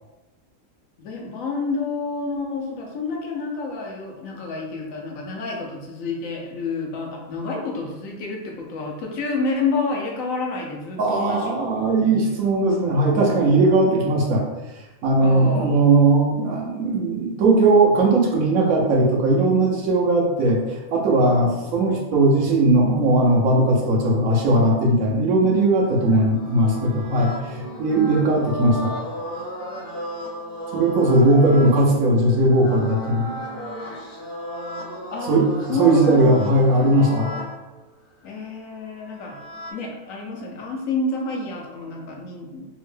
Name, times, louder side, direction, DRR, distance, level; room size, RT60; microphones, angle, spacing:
voice 1, 1.0-11.5 12.0-12.2 15.2-15.8 21.3-21.9 26.1-26.3 32.5-32.9 35.1-36.6 36.9-37.1 38.2-39.4 39.7-42.7, left 3 dB, 80° left, 0 dB, 1.1 m, -29 dB
voice 2, 11.0-14.4 15.0-28.9 30.7-33.3 35.3-37.3, right 2 dB, 85° right, -1 dB, 1.2 m, -18 dB
sound 1, 25.8-37.6 38.7-39.7, equal, 55° left, 0.6 m, -35 dB
3.5 x 2.1 x 3.2 m, 1.1 s
omnidirectional pair, 1.4 m